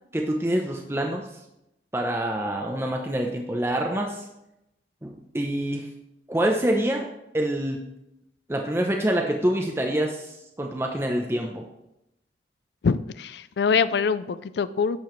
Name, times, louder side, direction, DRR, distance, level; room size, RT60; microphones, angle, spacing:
voice 1, 0.1-1.3 1.9-4.3 5.0-5.9 6.3-7.1 7.3-7.8 8.5-11.7, right 1 dB, 15° right, 1 dB, 0.7 m, -26 dB
voice 2, 12.8-15.0, left 5 dB, 75° left, 15 dB, 0.4 m, -24 dB
10.5 x 7.0 x 3.2 m, 0.86 s
head